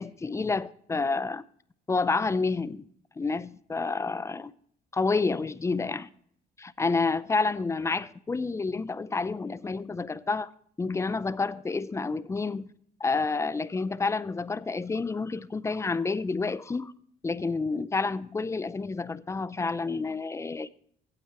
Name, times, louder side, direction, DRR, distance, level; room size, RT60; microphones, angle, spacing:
voice 1, 0.0-1.4 1.9-2.9 3.2-4.5 4.9-6.1 6.6-10.5 10.8-12.7 13.0-16.9 17.2-20.7, left 4 dB, 15° left, 0.5 m, -29 dB
16.0 x 8.9 x 3.0 m
cardioid pair, 110°, 17 cm